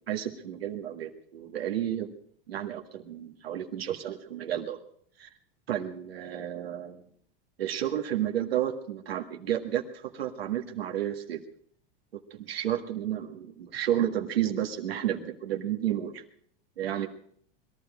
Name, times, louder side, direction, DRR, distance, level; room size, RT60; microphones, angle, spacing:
voice 1, 0.1-2.1 2.5-4.8 5.2-5.3 5.7-7.1 7.6-11.4 12.3-16.2 16.8-17.1, right 11 dB, 90° right, 3 dB, 1.9 m, -31 dB
21.5 x 12.5 x 5.0 m, 0.64 s
hypercardioid pair, 110°, 29 cm